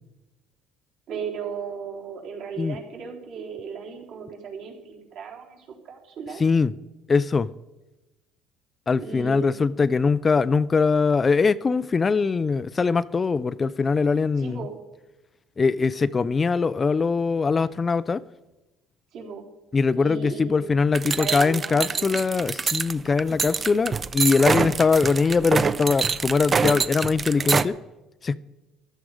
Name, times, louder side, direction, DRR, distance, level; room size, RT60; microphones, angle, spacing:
voice 1, 1.1-6.4 9.0-9.8 14.4-14.7 19.1-19.5 19.9-20.8 21.0-22.1, right 6 dB, 65° right, 3.8 m, -36 dB
voice 2, 6.4-6.7 7.1-7.5 8.9-14.7 15.6-18.2 19.7-27.8 28.2-28.4, left 4 dB, 25° left, 0.4 m, -22 dB
sound 1, 20.9-27.6, right 5 dB, 30° right, 0.5 m, -25 dB
14.5 x 12.5 x 5.0 m
cardioid pair, 115°, 0 cm